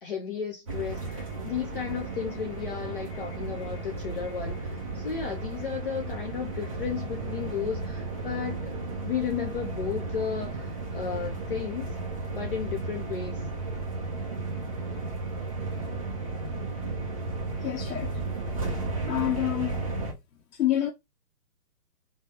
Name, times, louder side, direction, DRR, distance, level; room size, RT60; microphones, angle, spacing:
voice 1, 0.0-4.7 4.9-8.7 9.0-12.0 12.3-13.4, left 7 dB, 35° left, 0.6 m, -34 dB
sound 1, 0.7-20.1, right 3 dB, 20° right, 0.5 m, -34 dB
voice 2, 17.6-18.2 19.1-19.8 20.6-20.9, left 13 dB, 75° left, 0.9 m, -27 dB
3.5 x 2.2 x 4.1 m
hypercardioid pair, 155°, 48 cm